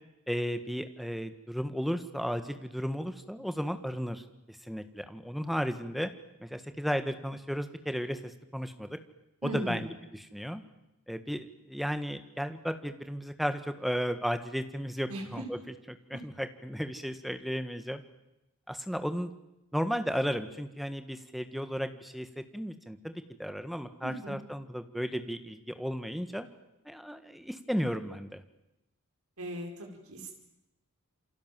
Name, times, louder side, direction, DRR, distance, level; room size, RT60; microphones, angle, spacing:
voice 1, 0.3-6.1 6.4-9.0 9.4-10.6 11.1-18.0 18.7-19.3 19.7-26.5 26.8-28.4, equal, ahead, 9 dB, 1.6 m, -34 dB
voice 2, 9.4-9.9 15.1-15.4 24.0-24.4 29.4-30.3, equal, 80° right, 2 dB, 4.7 m, -38 dB
28.0 x 26.0 x 7.7 m, 0.90 s
head